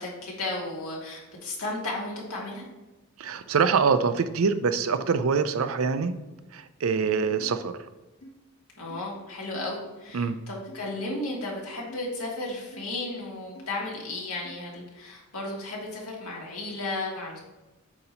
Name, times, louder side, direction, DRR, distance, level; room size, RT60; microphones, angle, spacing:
voice 1, 0.0-2.7 8.8-17.4, left 2 dB, 85° left, -3 dB, 2.0 m, -34 dB
voice 2, 3.2-6.1 6.5-7.8 10.1-10.4, right 5 dB, 75° right, 10 dB, 0.5 m, -24 dB
sound 1, 7.4-7.6 8.2-8.3 8.9-9.0 9.5-9.8 10.7-10.9 11.9-12.0 12.7-12.9 13.5-13.7 14.4-14.6, equal, 65° left, 1.3 m, -47 dB
8.3 x 2.9 x 5.3 m, 1.1 s
head